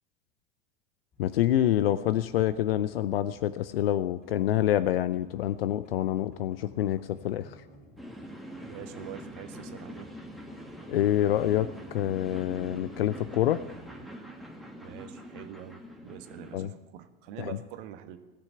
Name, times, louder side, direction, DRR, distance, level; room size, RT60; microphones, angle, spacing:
sound 1, 1.1-14.1, left 1 dB, 25° left, 3.6 m, -54 dB
voice 1, 1.2-7.5 10.9-13.6 16.5-16.7 17.4-17.5, left 12 dB, 70° left, 14 dB, 0.6 m, -27 dB
sound 2, 8.0-16.6, equal, ahead, 1.8 m, -44 dB
voice 2, 8.6-10.1 14.8-18.2, right 11 dB, 55° right, 9 dB, 1.3 m, -45 dB
16.0 x 6.8 x 9.8 m, 1.1 s
figure-of-eight pair, 80°, 30 cm